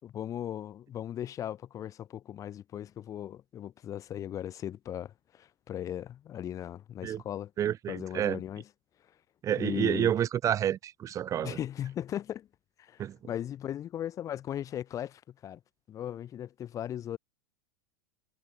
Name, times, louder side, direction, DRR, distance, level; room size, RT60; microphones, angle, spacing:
voice 1, 0.0-7.5 7.9-8.6 9.6-10.1 11.4-12.5 12.8-15.6 15.9-17.2, left 10 dB, 35° left, 5.7 m, -37 dB
voice 2, 7.6-8.4 9.4-11.6 13.0-13.2, right 10 dB, 30° right, 5.8 m, -29 dB
hypercardioid pair, 110°, 10 cm